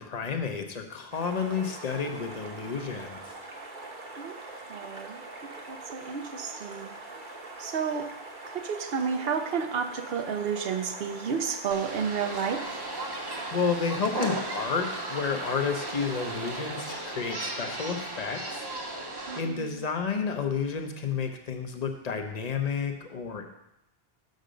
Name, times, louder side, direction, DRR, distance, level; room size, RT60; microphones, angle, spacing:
voice 1, 0.0-3.2 13.5-18.7 19.4-23.5, left 5 dB, 45° left, 5 dB, 0.9 m, -31 dB
sound 1, 1.1-17.0, right 2 dB, 50° right, 1.2 m, -43 dB
voice 2, 4.7-6.9 7.6-8.1 8.5-12.8 19.3-19.8, right 6 dB, 70° right, 7 dB, 0.9 m, -31 dB
sound 2, 11.7-19.4, right 2 dB, 25° right, 0.8 m, -36 dB
6.5 x 6.5 x 5.1 m, 0.85 s
omnidirectional pair, 1.0 m